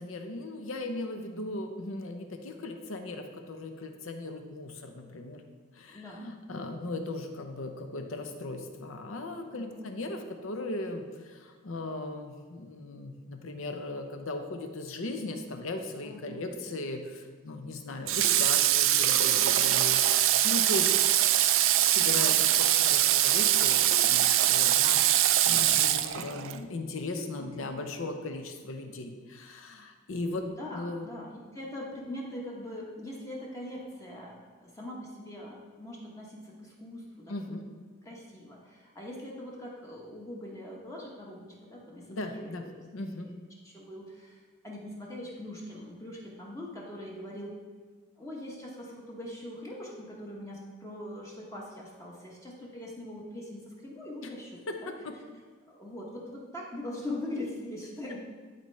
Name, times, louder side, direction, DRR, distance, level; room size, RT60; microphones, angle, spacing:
voice 1, 0.0-5.4 5.7-21.0 21.8-30.4 30.7-31.1 37.3-37.7 42.1-42.7 42.9-43.3 54.2-54.3 54.7-55.2, left 2 dB, 75° left, 5 dB, 0.7 m, -38 dB
voice 2, 9.4-9.9 16.0-16.5 19.3-19.8 21.9-22.5 27.4-27.5 27.8-27.9 30.6-37.6 38.0-42.8 43.2-43.3 43.6-47.6 48.2-54.9 55.7-58.2, left 1 dB, 15° left, -3 dB, 0.9 m, -42 dB
Water / Water tap faucet, 18.1-26.6, right 12 dB, 70° right, 0.4 m, -23 dB
12.0 x 4.1 x 3.2 m, 1.5 s
head